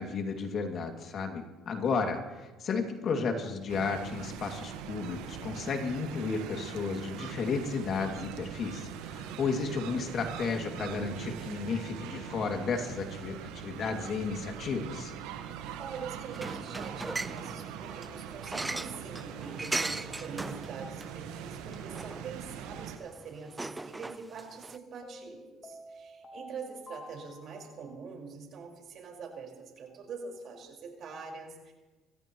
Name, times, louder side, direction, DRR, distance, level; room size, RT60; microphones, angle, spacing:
voice 1, 0.0-15.1, left 4 dB, 55° left, 3 dB, 2.4 m, -33 dB
sound 1, 3.7-23.0, right 8 dB, 80° right, 1.4 m, -42 dB
voice 2, 15.8-31.7, right 5 dB, 60° right, 0 dB, 4.9 m, -44 dB
sound 2, 16.3-24.8, right 2 dB, 15° right, 0.6 m, -39 dB
sound 3, 25.0-28.0, left 1 dB, 30° left, 3.9 m, -50 dB
25.0 x 15.5 x 3.1 m, 1.2 s
supercardioid pair, 75°, 0 cm